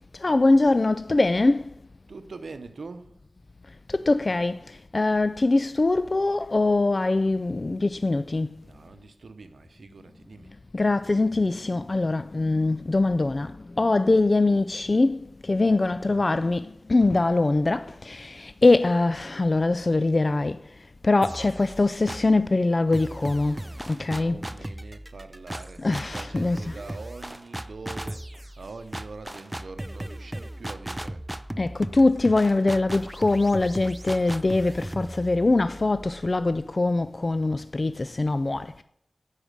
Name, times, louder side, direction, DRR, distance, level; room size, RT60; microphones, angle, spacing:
voice 1, 0.1-1.7 3.6-8.6 10.7-24.5 25.8-27.0 31.6-38.8, left 2 dB, 50° left, 0.3 m, -23 dB
voice 2, 2.1-3.2 8.6-10.6 24.0-31.3, right 3 dB, 85° right, 0.7 m, -43 dB
sound 1, 21.2-22.4 22.9-36.6, right 1 dB, 20° right, 0.4 m, -37 dB
10.0 x 4.9 x 6.6 m
cardioid pair, 45°, 0 cm